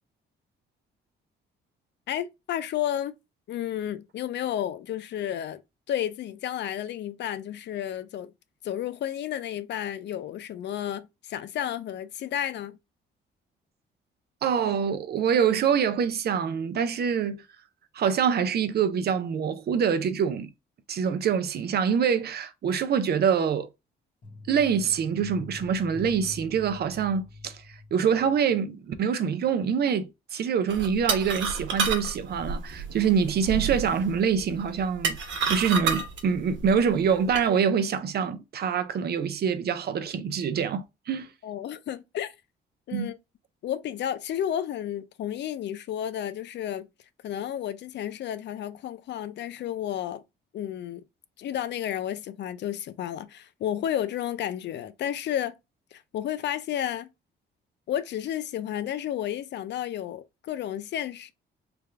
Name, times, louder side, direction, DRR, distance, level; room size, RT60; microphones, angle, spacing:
voice 1, 2.1-3.2 3.5-5.6 5.9-8.3 8.6-12.8 41.4-42.3 42.9-43.2 43.6-46.9 47.2-50.2 50.5-51.0 51.4-55.5 55.9-57.1 57.9-61.3, left 11 dB, 60° left, 0.4 m, -32 dB
voice 2, 14.4-17.4 17.9-20.5 20.9-23.7 24.5-27.6 27.9-35.2 35.5-41.3 42.9-43.1, right 7 dB, 55° right, 0.6 m, -25 dB
sound 1, 24.2-28.7 28.9-29.0, left 2 dB, 40° left, 1.1 m, -44 dB
sound 2, 30.7-37.5, right 5 dB, 70° right, 1.0 m, -31 dB
3.4 x 2.3 x 3.3 m
cardioid pair, 90°, 20 cm